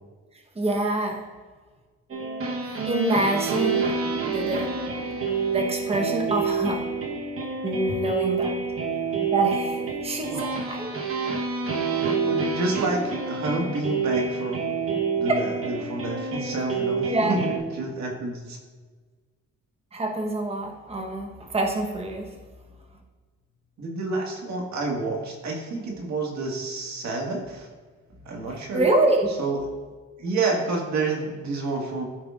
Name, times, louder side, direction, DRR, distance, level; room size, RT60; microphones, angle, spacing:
voice 1, 0.6-1.3 2.6-3.9 4.3-4.7 5.5-6.9 7.6-8.6 9.3-11.0 17.1-17.4 19.9-22.3 28.4-29.3, right 2 dB, 20° right, 1 dB, 1.0 m, -26 dB
sound 1, 2.1-17.6, right 4 dB, 50° right, 1.1 m, -28 dB
voice 2, 12.2-14.7 15.2-18.6 23.8-27.7 28.3-28.9 29.4-29.6 30.2-32.0, right 3 dB, 65° right, 0 dB, 1.8 m, -29 dB
13.5 x 4.9 x 2.5 m, 1.4 s
cardioid pair, 90°, 30 cm